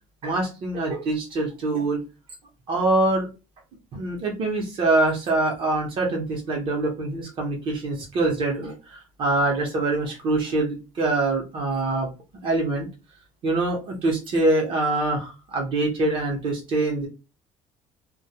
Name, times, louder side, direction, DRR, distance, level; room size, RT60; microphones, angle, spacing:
voice 1, 0.2-2.0 2.7-3.3 3.9-12.1 12.4-12.9 13.4-17.1, right 2 dB, 40° right, 0 dB, 0.7 m, -24 dB
2.2 x 2.1 x 2.7 m, 0.29 s
cardioid pair, 170°, 13 cm